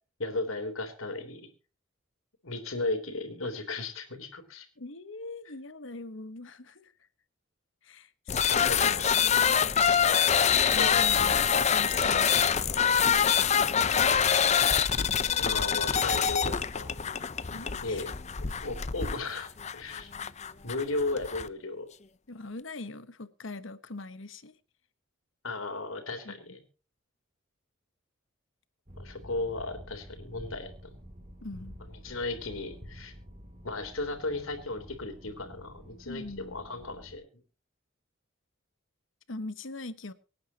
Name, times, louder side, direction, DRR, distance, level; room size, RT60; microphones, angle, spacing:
voice 1, 0.2-1.5 2.4-4.7 8.5-9.1 10.8-11.1 15.4-16.9 17.8-18.2 18.6-20.1 20.6-21.9 25.4-26.6 29.0-30.9 32.0-33.1 33.6-37.4, left 2 dB, 90° left, 3.6 m, -35 dB
voice 2, 4.8-6.9 7.8-9.5 10.4-12.4 13.2-14.2 17.5-18.1 22.3-24.5 26.2-26.4 31.4-31.8 36.0-36.5 39.3-40.1, left 2 dB, 70° left, 1.3 m, -42 dB
sound 1, 8.3-21.5, left 7 dB, 35° left, 0.6 m, -25 dB
sound 2, 28.9-37.2, equal, 35° right, 2.9 m, -49 dB
25.0 x 9.5 x 2.9 m
head